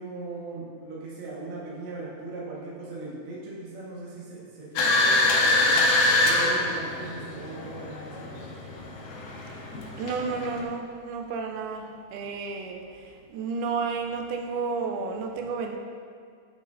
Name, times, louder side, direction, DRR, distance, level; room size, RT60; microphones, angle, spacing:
voice 1, 0.0-5.9 6.1-8.7, right 3 dB, 55° right, -7 dB, 2.3 m, -39 dB
sound 1, 4.8-10.6, left 2 dB, 75° left, 2.2 m, -25 dB
voice 2, 10.0-15.8, right 4 dB, 80° right, 3 dB, 2.3 m, -32 dB
10.0 x 6.2 x 2.7 m, 2.2 s
omnidirectional pair, 4.8 m